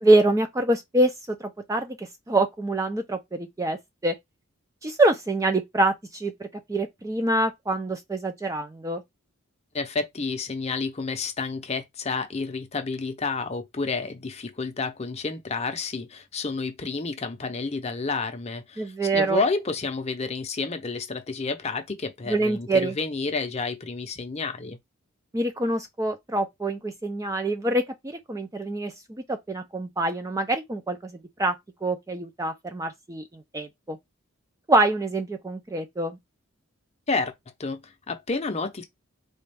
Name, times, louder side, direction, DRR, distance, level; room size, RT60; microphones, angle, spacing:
voice 1, 0.0-4.2 4.8-9.0 18.8-19.4 22.3-22.9 25.3-31.6 31.8-34.0 34.7-36.2, right 2 dB, 15° right, 0.4 m, -25 dB
voice 2, 9.7-24.8 37.1-37.3 37.6-38.8, left 4 dB, 30° left, 0.6 m, -30 dB
4.1 x 2.3 x 3.4 m
head